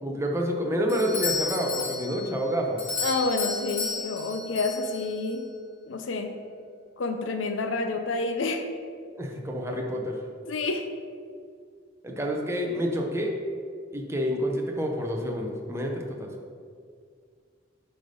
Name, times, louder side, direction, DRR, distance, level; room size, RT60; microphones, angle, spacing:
voice 1, 0.0-2.8 9.2-10.2 12.0-13.4 13.9-16.3, equal, 15° right, 1 dB, 0.7 m, -28 dB
Doorbell, 0.9-5.4, left 4 dB, 30° left, 1.5 m, -33 dB
voice 2, 3.0-5.5 5.9-6.3 7.0-8.7 10.5-10.9, left 3 dB, 90° left, 6 dB, 0.5 m, -29 dB
7.8 x 3.4 x 5.3 m, 2.1 s
head